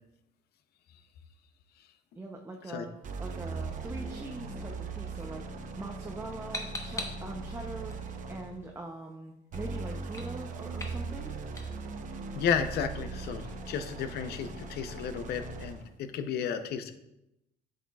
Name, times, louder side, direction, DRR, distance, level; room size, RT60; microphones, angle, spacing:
voice 1, 2.2-11.4, right 2 dB, 15° right, 1 dB, 0.7 m, -42 dB
sound 1, 3.0-8.6 9.5-15.9, right 4 dB, 50° right, 0.8 m, -39 dB
sound 2, 5.2-15.0, left 2 dB, 20° left, 1.0 m, -47 dB
voice 2, 12.3-16.9, left 7 dB, 70° left, 9 dB, 0.7 m, -33 dB
8.1 x 6.5 x 2.3 m, 0.86 s
cardioid pair, 110°, 17 cm